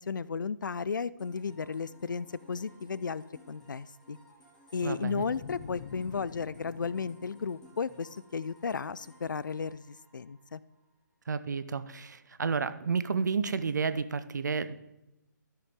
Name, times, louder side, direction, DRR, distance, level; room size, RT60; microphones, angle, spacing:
voice 1, 0.1-4.2 4.7-10.6, left 5 dB, 75° left, 19 dB, 0.4 m, -34 dB
sound 1, 1.2-10.9, equal, 5° left, 1.8 m, -59 dB
voice 2, 4.8-5.2 11.3-14.7, right 5 dB, 65° right, 13 dB, 0.6 m, -31 dB
sound 2, 5.0-8.3, left 7 dB, 40° left, 0.7 m, -47 dB
12.5 x 6.7 x 3.6 m, 0.93 s
figure-of-eight pair, 145°, 10 cm